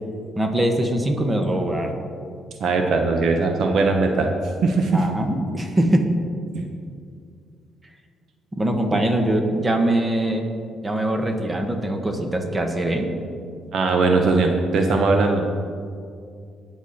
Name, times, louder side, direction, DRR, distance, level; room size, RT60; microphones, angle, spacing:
voice 1, 0.4-1.9 4.9-6.1 8.5-10.4 10.8-13.1, right 1 dB, 20° right, 4 dB, 1.6 m, -22 dB
voice 2, 2.6-4.3 4.6-5.0 6.5-6.6 13.7-15.4, right 3 dB, 65° right, 3 dB, 1.2 m, -19 dB
19.5 x 7.1 x 4.4 m, 2.3 s
cardioid pair, 90°, 0 cm